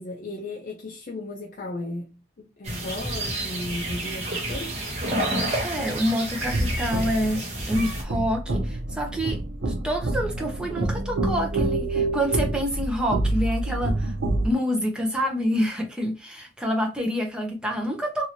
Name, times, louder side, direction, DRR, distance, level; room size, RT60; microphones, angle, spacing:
voice 1, 0.0-4.8, left 2 dB, 45° left, 0.4 m, -35 dB
sound 1, 2.6-8.0, right 1 dB, 35° right, 1.0 m, -30 dB
voice 2, 5.6-14.1 14.4-18.3, equal, 5° right, 0.7 m, -27 dB
sound 2, 6.4-14.5, right 2 dB, 90° right, 0.7 m, -27 dB
2.8 x 2.7 x 2.8 m
head